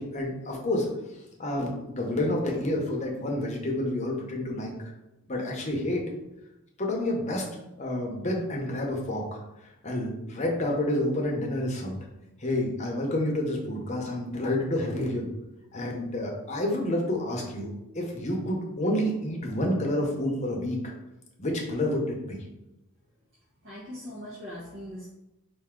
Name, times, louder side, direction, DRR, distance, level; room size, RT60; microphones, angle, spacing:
voice 1, 0.0-4.7 5.3-6.0 6.8-7.5 7.8-9.4 9.8-12.0 12.4-15.3 15.7-20.9 21.4-22.4, left 1 dB, 30° left, 0 dB, 0.8 m, -29 dB
voice 2, 23.6-25.1, equal, 60° right, -7 dB, 1.0 m, -40 dB
4.4 x 2.6 x 3.7 m, 0.94 s
head